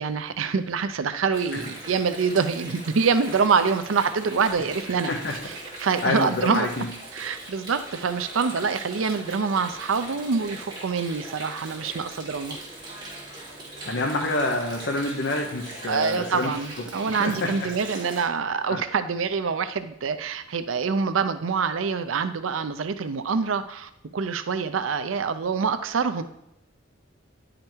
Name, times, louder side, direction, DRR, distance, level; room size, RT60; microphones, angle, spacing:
voice 1, 0.0-12.6 15.9-26.2, right 5 dB, 90° right, 11 dB, 0.5 m, -26 dB
Water, 1.3-18.2, right 1 dB, 20° right, 2.8 m, -40 dB
voice 2, 6.0-6.9 13.9-16.5 17.1-17.5 18.7-18.8, left 2 dB, 60° left, 1 dB, 1.0 m, -27 dB
10.5 x 5.1 x 4.5 m, 0.82 s
head